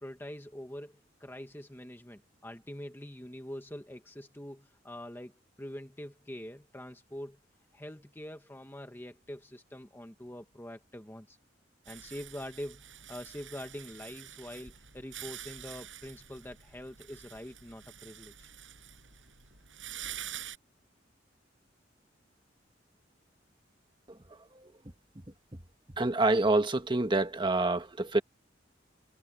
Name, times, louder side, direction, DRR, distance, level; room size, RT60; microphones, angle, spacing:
voice 1, 0.0-5.3 5.6-7.4 7.7-11.4 11.9-18.5, left 1 dB, 10° left, 1.3 m, -44 dB
sound 1, 11.8-20.6, right 10 dB, 85° right, 7.3 m, -47 dB
voice 2, 26.0-28.2, right 2 dB, 25° right, 1.4 m, -27 dB
head